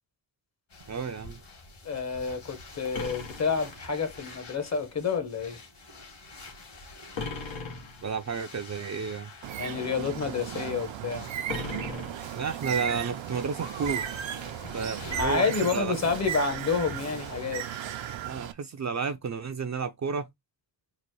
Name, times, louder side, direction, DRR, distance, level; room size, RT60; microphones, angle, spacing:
sound 1, 0.7-18.2, left 2 dB, 65° left, 2.3 m, -47 dB
voice 1, 0.9-1.4 8.0-9.3 12.3-14.1 14.7-15.5 15.7-16.1 18.2-20.3, right 5 dB, 40° right, 0.5 m, -32 dB
voice 2, 1.8-5.6 9.6-11.3 15.1-17.6, left 5 dB, 35° left, 0.9 m, -29 dB
sound 2, 2.9-4.3 7.1-8.3 11.5-12.8, left 4 dB, 90° left, 1.4 m, -38 dB
Bird, 9.4-18.5, right 10 dB, 80° right, 0.7 m, -36 dB
4.1 x 2.5 x 4.5 m
wide cardioid pair, 145°, 45 cm